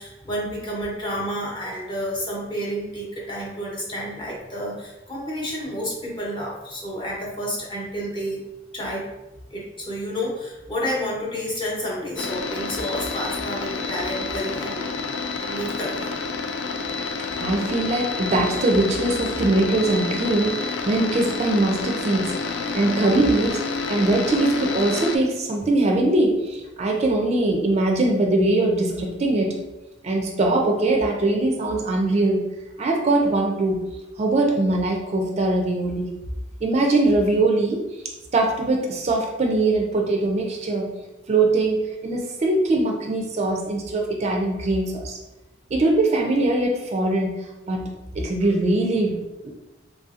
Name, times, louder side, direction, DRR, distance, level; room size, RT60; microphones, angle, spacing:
voice 1, 0.0-8.4 8.7-9.1 9.5-14.9 15.5-16.2, equal, 25° left, -4 dB, 0.8 m, -30 dB
sound 1, 12.2-25.2, left 4 dB, 85° left, 0.3 m, -29 dB
voice 2, 17.4-23.6 23.9-29.6 30.0-32.4 32.8-33.8 34.2-36.1 36.6-37.8 38.3-40.9 41.3-45.2 45.7-49.5, right 2 dB, 35° right, 1 dB, 0.4 m, -22 dB
3.4 x 2.6 x 2.4 m, 1.0 s
head